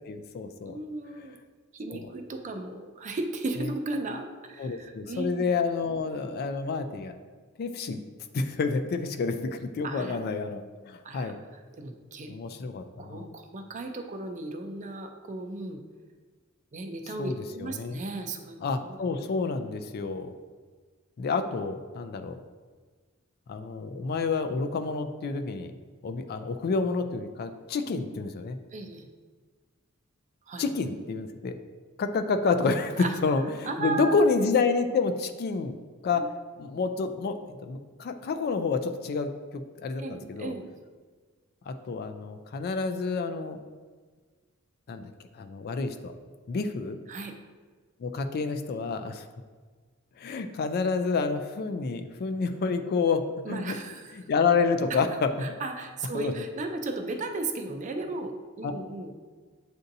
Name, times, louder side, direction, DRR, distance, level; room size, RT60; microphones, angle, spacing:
voice 1, 0.1-0.8 1.9-2.1 4.6-7.2 7.6-8.0 8.3-11.4 12.3-13.3 17.2-17.4 17.6-18.0 18.6-20.3 21.2-22.3 23.5-25.7 26.0-28.6 30.6-31.6 32.0-35.8 36.0-36.2 36.6-40.5 41.7-43.6 44.9-46.1 46.5-47.0 48.0-49.2 50.2-53.2 53.5-53.8 54.3-55.3 56.1-56.3 58.6-58.7, left 4 dB, 45° left, 8 dB, 0.3 m, -29 dB
voice 2, 0.6-1.4 1.7-5.6 9.8-10.2 11.0-12.3 13.0-15.8 16.7-19.0 28.7-29.1 30.5-30.7 33.0-33.2 33.7-34.3 36.2-36.3 40.0-40.7 47.1-47.3 53.4-54.2 55.4-59.1, right 2 dB, 35° right, 5 dB, 0.4 m, -35 dB
7.8 x 2.6 x 2.6 m, 1.5 s
head